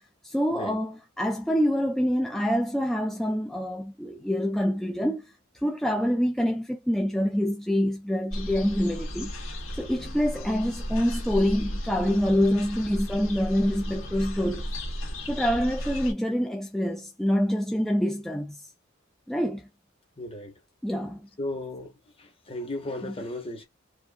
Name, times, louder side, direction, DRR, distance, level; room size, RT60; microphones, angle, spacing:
voice 1, 0.0-5.3 5.6-9.3 9.7-14.7 15.3-18.6 19.3-19.7 20.8-21.3, equal, ahead, 0.4 m, -26 dB
sound 1, 8.3-16.1, equal, 85° left, 1.6 m, -34 dB
voice 2, 20.2-20.5 21.4-23.7, left 1 dB, 30° left, 1.3 m, -35 dB
4.6 x 2.5 x 2.4 m
head